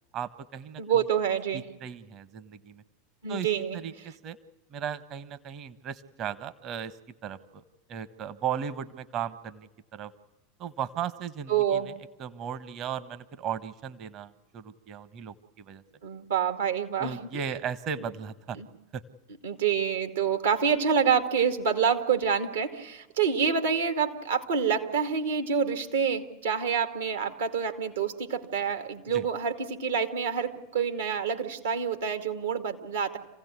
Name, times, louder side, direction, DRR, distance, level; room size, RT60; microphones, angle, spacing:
voice 1, 0.1-0.8 1.5-2.8 3.3-4.4 4.7-7.0 7.2-7.6 7.9-10.1 10.6-11.9 12.2-15.8 17.0-18.6 18.9-19.0 29.1-29.2, right 8 dB, 40° right, 13 dB, 1.3 m, -36 dB
voice 2, 0.8-1.7 3.2-3.8 11.5-11.9 16.0-17.4 18.6-18.7 19.4-33.2, right 7 dB, 75° right, 6 dB, 2.3 m, -27 dB
27.5 x 16.5 x 9.6 m, 1.1 s
figure-of-eight pair, 85°, 0 cm